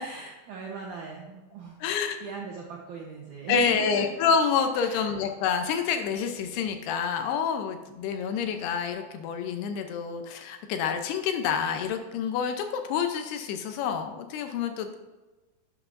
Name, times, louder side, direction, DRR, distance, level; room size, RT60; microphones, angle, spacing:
voice 1, 0.0-4.1 4.8-5.1, right 5 dB, 80° right, -1 dB, 1.8 m, -40 dB
voice 2, 1.8-2.2 3.5-15.0, left 6 dB, 80° left, 6 dB, 2.6 m, -28 dB
11.0 x 8.1 x 2.6 m, 1.2 s
omnidirectional pair, 4.9 m